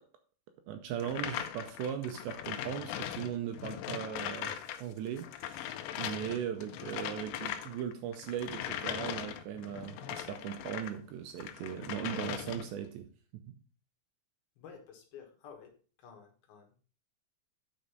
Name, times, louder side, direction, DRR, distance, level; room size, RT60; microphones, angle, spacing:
voice 1, 0.7-13.0 13.5-13.6, right 9 dB, 85° right, 6 dB, 2.6 m, -38 dB
sound 1, 1.0-4.8 5.1-11.0 11.4-12.8, left 11 dB, 80° left, 2.5 m, -40 dB
voice 2, 14.6-15.7 16.0-16.8, left 7 dB, 65° left, 3 dB, 2.7 m, -52 dB
8.9 x 5.3 x 5.3 m, 0.39 s
omnidirectional pair, 5.9 m